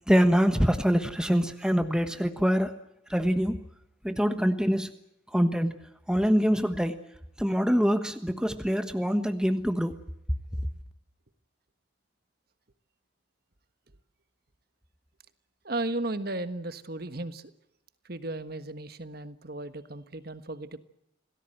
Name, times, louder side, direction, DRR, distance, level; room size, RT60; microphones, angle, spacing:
voice 1, 0.1-2.8 3.1-3.6 4.0-4.9 5.3-5.8 6.1-7.0 7.4-10.0, equal, 5° right, 8 dB, 1.2 m, -24 dB
voice 2, 15.6-17.5 18.0-20.8, right 2 dB, 50° right, 11 dB, 1.4 m, -35 dB
27.0 x 18.5 x 7.8 m, 0.81 s
head